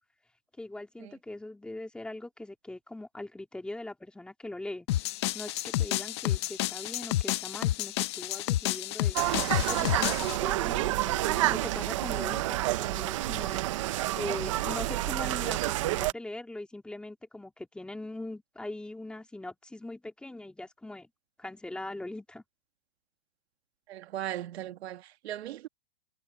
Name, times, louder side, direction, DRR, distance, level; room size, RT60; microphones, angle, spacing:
voice 1, 0.6-4.9 5.3-9.2 9.7-13.6 14.1-21.1 21.4-22.4, left 2 dB, ahead, 2.2 m, -41 dB
sound 1, 4.9-10.4, left 15 dB, 20° left, 0.5 m, -30 dB
sound 2, 9.1-16.1, right 16 dB, 25° right, 0.5 m, -29 dB
voice 2, 23.9-25.7, right 13 dB, 55° right, 1.7 m, -38 dB
hypercardioid pair, 160°, 38 cm